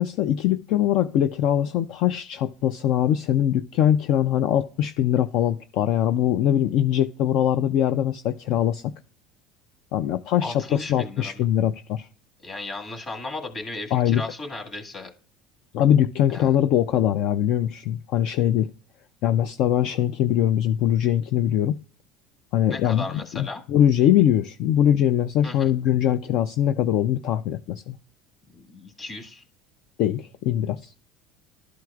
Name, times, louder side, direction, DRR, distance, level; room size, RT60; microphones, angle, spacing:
voice 1, 0.0-8.8 9.9-12.1 13.9-14.2 15.7-18.7 19.2-21.7 22.5-28.0 30.0-30.9, left 11 dB, 50° left, 0.4 m, -22 dB
voice 2, 10.4-11.3 12.4-15.1 16.3-16.5 22.7-23.6 25.4-25.7 28.5-29.4, left 2 dB, 25° left, 1.7 m, -35 dB
12.5 x 4.6 x 2.4 m
cardioid pair, 170°, 0 cm